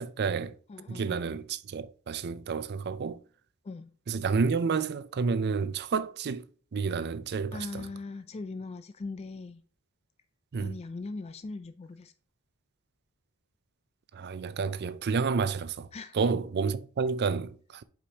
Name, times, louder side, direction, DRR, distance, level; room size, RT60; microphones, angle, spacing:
voice 1, 0.0-0.6 0.9-3.2 4.1-6.5 6.7-7.9 10.5-10.8 14.1-15.9 16.1-17.8, right 5 dB, 50° right, 0.4 m, -30 dB
voice 2, 0.7-1.2 3.6-3.9 7.5-9.6 10.6-12.1 15.9-16.2, left 3 dB, 30° left, 0.4 m, -40 dB
8.2 x 5.0 x 2.8 m
head